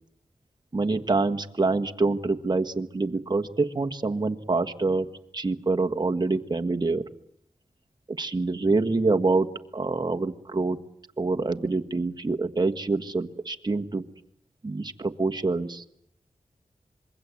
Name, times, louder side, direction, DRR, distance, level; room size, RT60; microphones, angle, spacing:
voice 1, 0.7-5.1 5.3-7.1 8.1-9.5 9.7-10.8 11.2-14.0 14.6-15.8, right 3 dB, 35° right, 5 dB, 1.5 m, -26 dB
26.0 x 22.0 x 8.4 m, 0.74 s
wide cardioid pair, 75°, 13 cm